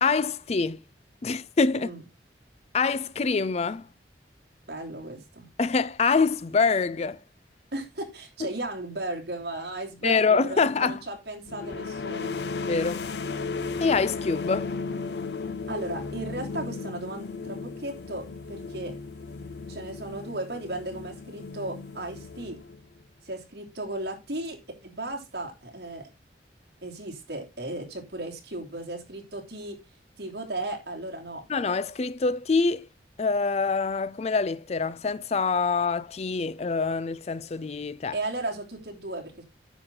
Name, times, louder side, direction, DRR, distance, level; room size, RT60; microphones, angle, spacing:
voice 1, 0.0-0.8 1.2-1.9 2.7-3.9 5.6-7.2 10.0-11.0 12.7-13.1 13.8-14.7 31.5-32.9 33.2-38.2, left 4 dB, 35° left, 0.4 m, -25 dB
voice 2, 4.7-5.5 7.7-12.4 15.7-18.9 19.7-22.6 23.2-26.1 26.8-29.8 30.2-31.4 38.1-39.4, right 2 dB, 65° right, 3.1 m, -35 dB
sound 1, 11.5-23.0, left 4 dB, 70° left, 0.7 m, -35 dB
9.9 x 7.0 x 3.8 m
head